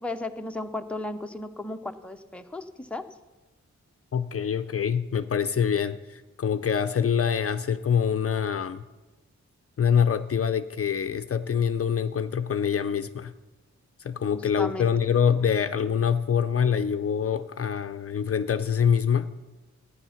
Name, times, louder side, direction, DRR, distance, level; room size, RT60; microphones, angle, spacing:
voice 1, 0.0-3.0 14.3-14.9, left 2 dB, 5° left, 5 dB, 0.7 m, -35 dB
voice 2, 4.1-8.8 9.8-13.3 14.0-19.3, left 7 dB, 50° left, 10 dB, 0.5 m, -25 dB
13.5 x 10.0 x 5.7 m, 1.2 s
wide cardioid pair, 95°, 29 cm